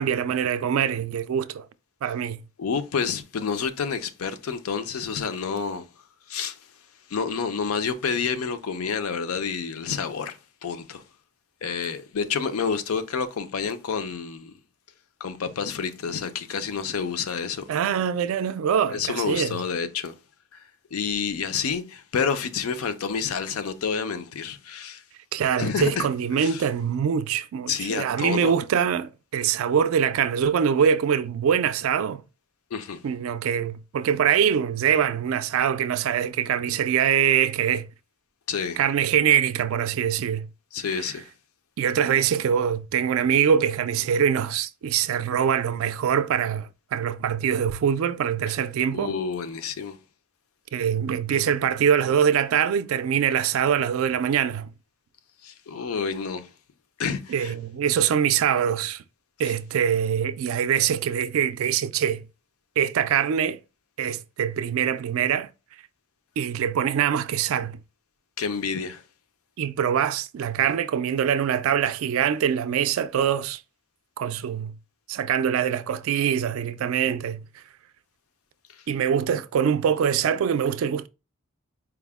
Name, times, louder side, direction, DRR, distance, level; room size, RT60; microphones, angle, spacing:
voice 1, 0.0-1.7 2.0-2.4 17.7-19.6 25.3-32.2 33.0-37.9 38.8-40.5 40.9-41.0 41.8-49.1 50.7-54.7 57.3-59.0 59.4-62.2 62.8-63.6 64.0-65.5 66.4-67.8 69.6-73.6 74.2-74.7 75.1-77.4 78.9-81.1, right 8 dB, 70° right, 0.3 m, -23 dB
voice 2, 2.6-5.9 6.3-6.6 7.1-11.0 11.6-14.5 15.2-17.7 18.9-20.1 20.9-25.0 25.6-26.1 26.3-26.6 27.7-28.6 32.7-33.0 38.5-38.8 40.7-41.3 48.5-48.6 48.9-50.0 55.4-56.5 57.0-57.5 59.4-59.5 68.4-69.0, left 6 dB, 80° left, 0.5 m, -29 dB
4.6 x 2.0 x 3.4 m
head